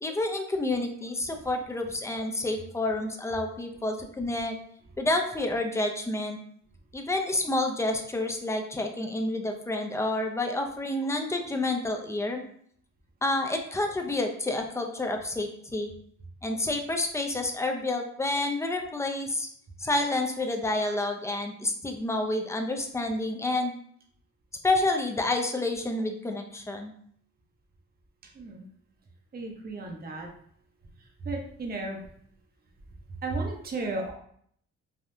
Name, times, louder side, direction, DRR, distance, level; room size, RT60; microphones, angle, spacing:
voice 1, 0.0-4.6 5.0-6.4 6.9-12.4 13.2-15.9 16.4-19.5 19.8-23.7 24.6-26.9, left 2 dB, 10° left, 3 dB, 0.4 m, -29 dB
voice 2, 29.3-30.3 31.3-32.0 33.2-34.1, right 3 dB, 30° right, 1 dB, 0.7 m, -33 dB
3.4 x 2.3 x 2.7 m, 0.63 s
cardioid pair, 90°, 30 cm